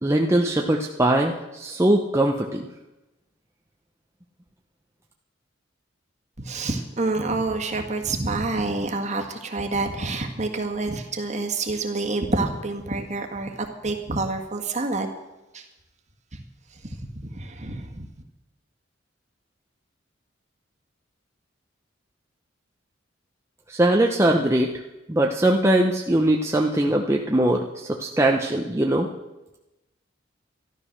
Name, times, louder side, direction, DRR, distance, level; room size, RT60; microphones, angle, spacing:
voice 1, 0.0-2.7 23.7-24.7 25.1-29.1, right 1 dB, 15° right, 1 dB, 0.8 m, -21 dB
voice 2, 6.4-15.1 15.5-15.6 16.3-16.4 17.1-18.1, right 3 dB, 35° right, 4 dB, 1.7 m, -28 dB
13.0 x 12.0 x 6.6 m, 1.0 s
head